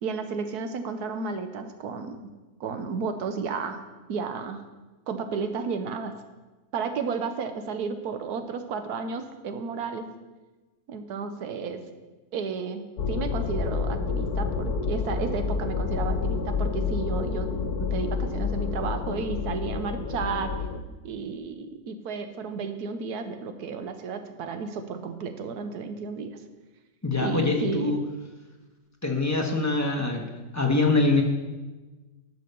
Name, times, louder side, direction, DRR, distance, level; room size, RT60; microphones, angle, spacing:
voice 1, 0.0-2.3 2.6-3.8 4.1-4.6 5.1-6.2 6.7-10.1 10.9-11.8 12.3-20.5 21.0-26.4 27.2-27.9, right 5 dB, 85° right, 8 dB, 1.4 m, -32 dB
sound 1, 13.0-20.8, left 5 dB, 85° left, 1.3 m, -29 dB
voice 2, 27.0-28.0 29.0-31.2, left 3 dB, 10° left, 1 dB, 1.1 m, -24 dB
11.5 x 5.7 x 6.7 m, 1.2 s
omnidirectional pair, 1.6 m